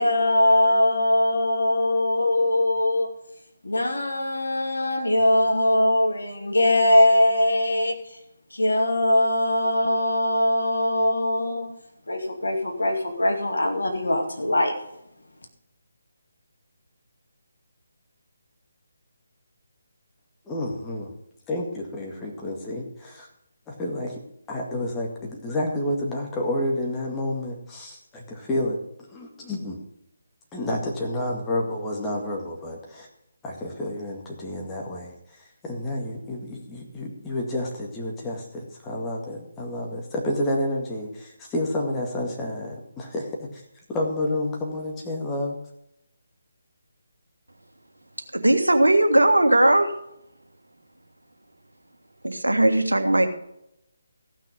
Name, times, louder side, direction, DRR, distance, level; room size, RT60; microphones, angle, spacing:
voice 1, 0.0-3.1 3.6-8.0 8.5-11.7 12.1-14.8, left 1 dB, 70° left, 3 dB, 2.4 m, -21 dB
voice 2, 20.5-21.1 21.5-23.3 23.7-24.2 24.5-28.8 29.1-29.8 30.5-33.1 33.4-35.1 35.6-43.6 43.9-45.6, left 1 dB, 10° left, -2 dB, 2.0 m, -30 dB
voice 3, 48.3-49.9 52.2-53.3, right 1 dB, 80° right, 7 dB, 1.5 m, -18 dB
15.0 x 6.1 x 5.3 m, 0.80 s
figure-of-eight pair, 150°, 0 cm